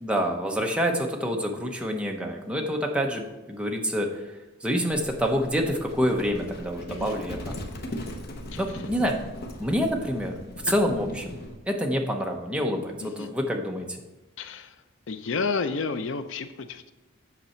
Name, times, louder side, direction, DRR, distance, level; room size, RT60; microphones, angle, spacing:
voice 1, 0.0-4.1 4.6-7.5 8.6-9.2 9.6-10.4 10.7-11.4 11.7-14.0, equal, 5° right, 1 dB, 0.8 m, -27 dB
Livestock farm animals working animals, 4.9-11.6, left 1 dB, 50° left, 0.9 m, -39 dB
voice 2, 8.5-8.9 10.7-10.8 13.0-13.3 14.4-16.9, left 4 dB, 65° left, 10 dB, 0.5 m, -32 dB
8.1 x 6.1 x 4.3 m, 1.1 s
head